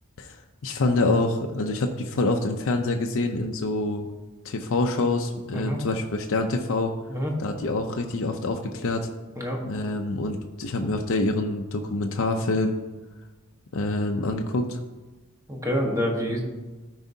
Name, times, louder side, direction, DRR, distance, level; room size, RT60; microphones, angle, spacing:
voice 1, 0.2-4.1 4.4-6.9 7.4-9.1 9.6-12.8 13.7-14.8, left 2 dB, 65° left, 3 dB, 0.6 m, -26 dB
voice 2, 15.5-16.4, equal, 15° right, 0 dB, 1.2 m, -27 dB
12.5 x 4.8 x 2.7 m, 1.2 s
head